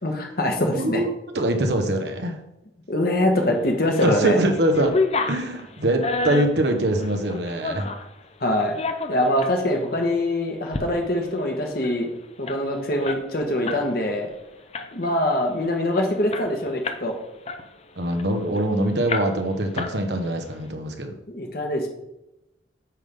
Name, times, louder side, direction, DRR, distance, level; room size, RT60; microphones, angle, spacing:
voice 1, 0.0-1.0 2.9-4.4 8.4-8.8 9.1-12.1 12.4-14.3 14.9-17.2 21.3-21.9, left 1 dB, 50° left, 3 dB, 1.3 m, -23 dB
voice 2, 0.8-1.1 1.3-2.4 4.0-5.0 5.3-7.9 18.0-21.1, right 1 dB, 60° right, 4 dB, 1.1 m, -23 dB
sound 1, 3.6-4.2 4.5-8.1 8.6-9.6 10.0-10.1 10.5-10.9 11.2-11.3 11.5-13.9 14.2-14.4 14.7-15.2 15.6-15.7 16.0-17.1 17.5-18.6 19.1-19.5 19.8-20.4, left 3 dB, 35° left, 0.5 m, -30 dB
9.1 x 3.6 x 5.3 m, 0.91 s
head